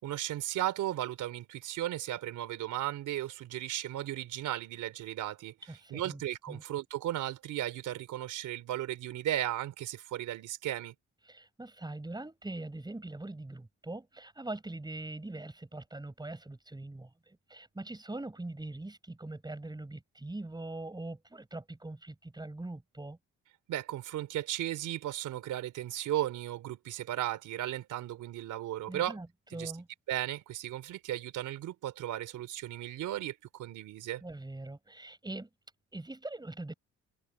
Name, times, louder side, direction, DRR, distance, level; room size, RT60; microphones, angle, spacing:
voice 1, 0.0-5.5 5.9-10.9 23.7-29.2 29.5-29.7 30.1-34.2, right 13 dB, 85° right, 3.5 m, -35 dB
voice 2, 5.7-6.2 6.5-6.6 11.3-23.2 28.9-29.3 29.5-29.9 34.2-35.5 35.9-36.7, right 2 dB, 15° right, 6.7 m, -42 dB
cardioid pair, 90°, 30 cm